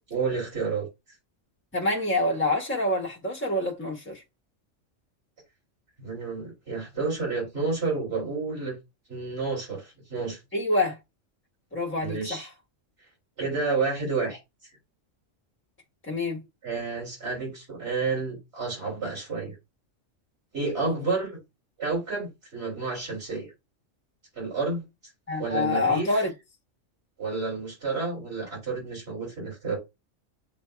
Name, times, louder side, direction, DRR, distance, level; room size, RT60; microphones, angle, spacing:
voice 1, 0.1-0.9 6.0-8.7 9.1-10.4 12.0-12.5 13.4-14.4 16.6-19.5 20.5-21.4 21.8-23.5 24.3-24.8 25.4-26.1 27.2-29.8, right 4 dB, 55° right, 3.2 m, -30 dB
voice 2, 1.7-4.2 10.5-11.0 11.7-12.5 16.0-16.4 20.8-20.9 25.3-26.3, left 2 dB, 10° left, 1.2 m, -26 dB
8.1 x 2.8 x 2.2 m
omnidirectional pair, 1.3 m